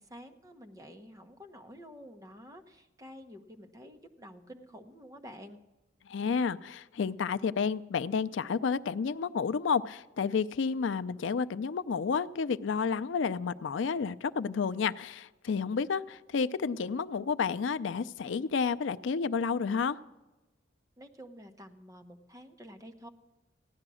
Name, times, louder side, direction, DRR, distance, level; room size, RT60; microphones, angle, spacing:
voice 1, 0.0-5.6 21.0-23.1, equal, 20° right, 4 dB, 1.0 m, -50 dB
voice 2, 6.1-20.0, left 5 dB, 75° left, 15 dB, 0.4 m, -31 dB
15.5 x 10.5 x 6.2 m, 1.1 s
head